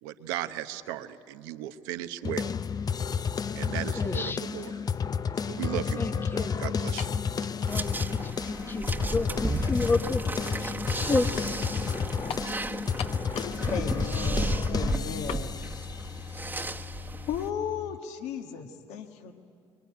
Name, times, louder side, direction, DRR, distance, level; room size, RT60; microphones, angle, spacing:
voice 1, 0.0-2.5 3.5-4.8 5.5-7.1, right 12 dB, 85° right, 10 dB, 0.9 m, -36 dB
sound 1, 2.2-18.0, left 6 dB, 35° left, 0.6 m, -31 dB
voice 2, 4.0-4.4 6.0-6.5 7.7-8.2 8.5-10.2 10.6-10.7 11.1-11.4, left 3 dB, 20° left, 10 dB, 0.9 m, -30 dB
sound 2, 7.0-7.3 8.2-8.3 12.3-12.5 13.0-13.6 13.9-14.0 15.3-15.5, left 9 dB, 60° left, 0.9 m, -37 dB
sound 3, 7.7-17.5, right 3 dB, 20° right, 1.2 m, -34 dB
voice 3, 13.6-15.5 16.7-19.3, left 7 dB, 75° left, 5 dB, 1.7 m, -36 dB
24.0 x 23.0 x 9.6 m, 2.3 s
supercardioid pair, 70°, 11 cm